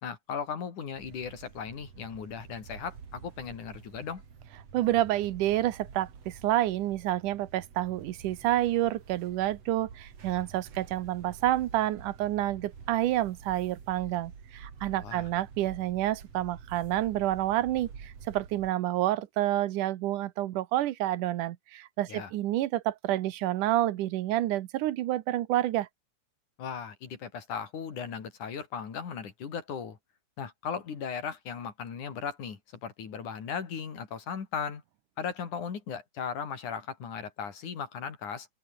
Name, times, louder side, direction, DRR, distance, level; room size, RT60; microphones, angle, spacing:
voice 1, 0.0-4.2 15.0-15.3 22.1-22.3 26.6-30.0 30.4-34.8 35.2-38.5, left 6 dB, 75° left, 4.7 m, -37 dB
sound 1, 0.9-18.7, right 6 dB, 55° right, 3.9 m, -48 dB
voice 2, 4.7-25.9, right 14 dB, 85° right, 2.6 m, -29 dB
open air
omnidirectional pair, 3.5 m